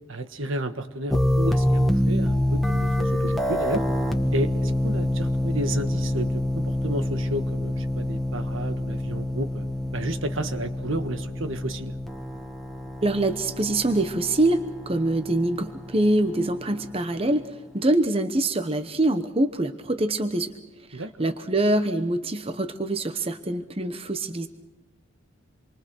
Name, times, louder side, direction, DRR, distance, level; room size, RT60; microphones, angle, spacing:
voice 1, 0.1-3.8 4.3-9.6 9.9-11.9 20.9-21.3, right 1 dB, 70° right, 8 dB, 1.6 m, -32 dB
sound 1, 1.1-17.0, left 1 dB, ahead, 1.6 m, -26 dB
voice 2, 13.0-20.5 20.9-24.5, right 2 dB, 25° right, 9 dB, 1.0 m, -24 dB
28.0 x 24.0 x 6.4 m, 1.0 s
head